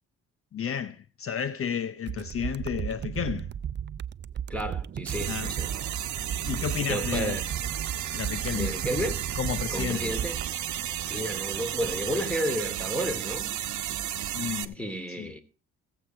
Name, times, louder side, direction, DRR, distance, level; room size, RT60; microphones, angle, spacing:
voice 1, 0.5-3.5 5.3-5.5 6.4-7.4 8.1-8.7 9.4-10.1 14.3-14.8 15.2-15.3, left 8 dB, 45° left, 0.7 m, -32 dB
sound 1, 2.1-10.5, right 9 dB, 35° right, 0.5 m, -35 dB
voice 2, 4.5-5.7 6.8-7.4 8.5-9.2 9.7-10.4 11.1-13.5 14.7-15.4, equal, 5° left, 2.6 m, -32 dB
sound 2, 5.1-14.7, right 11 dB, 70° right, 1.0 m, -33 dB
16.5 x 8.0 x 4.4 m
cardioid pair, 90°, 30 cm